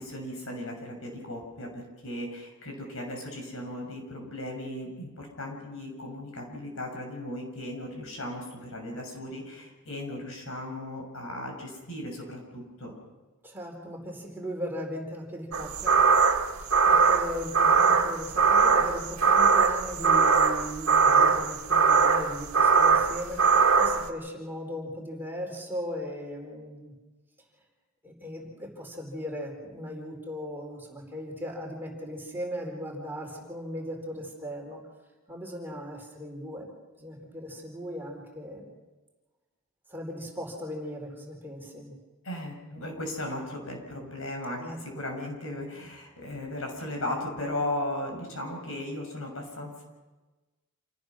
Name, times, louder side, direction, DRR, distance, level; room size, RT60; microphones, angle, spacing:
voice 1, 0.0-12.9 42.2-49.8, left 1 dB, 70° left, 2 dB, 6.9 m, -36 dB
voice 2, 13.4-16.0 16.4-26.9 28.0-34.8 35.3-36.7 37.0-38.7 39.9-41.9 44.6-44.8, equal, 10° right, 0 dB, 4.4 m, -38 dB
sound 1, 15.5-24.1, right 5 dB, 80° right, 2.0 m, -21 dB
28.0 x 18.0 x 6.4 m, 1.2 s
head